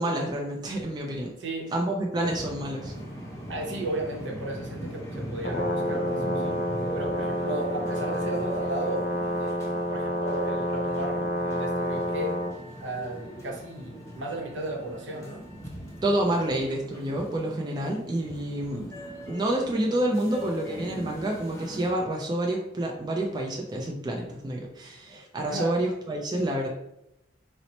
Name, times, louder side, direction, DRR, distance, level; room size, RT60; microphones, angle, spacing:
voice 1, 0.0-1.3 1.7-2.9 16.0-18.9 19.3-26.7, right 1 dB, 25° right, 0 dB, 0.4 m, -28 dB
voice 2, 1.4-1.7 2.2-2.3 3.5-6.6 6.9-9.1 9.4-9.5 9.9-12.4 12.8-15.4 25.4-25.8, right 2 dB, 70° right, 0 dB, 0.7 m, -34 dB
sound 1, 2.1-21.9, equal, 15° left, 0.7 m, -40 dB
Brass instrument, 5.4-12.5, equal, 50° left, 0.5 m, -29 dB
2.8 x 2.1 x 4.0 m, 0.82 s
head